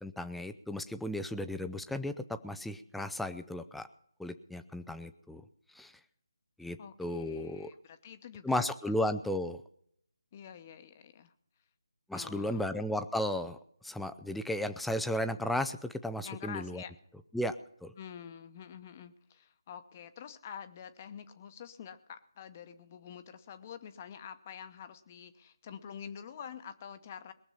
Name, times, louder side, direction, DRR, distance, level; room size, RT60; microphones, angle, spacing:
voice 1, 0.0-3.9 4.2-5.4 5.7-5.9 6.6-7.7 8.4-9.6 12.1-13.6 13.8-16.8 17.3-17.6 17.8-17.9, left 1 dB, ahead, 9 dB, 0.4 m, -34 dB
voice 2, 6.8-8.9 10.3-11.3 12.1-12.7 16.2-16.9 18.0-27.3, left 8 dB, 25° left, 10 dB, 0.9 m, -47 dB
21.5 x 7.3 x 5.6 m, 0.70 s
figure-of-eight pair, 155°, 3 cm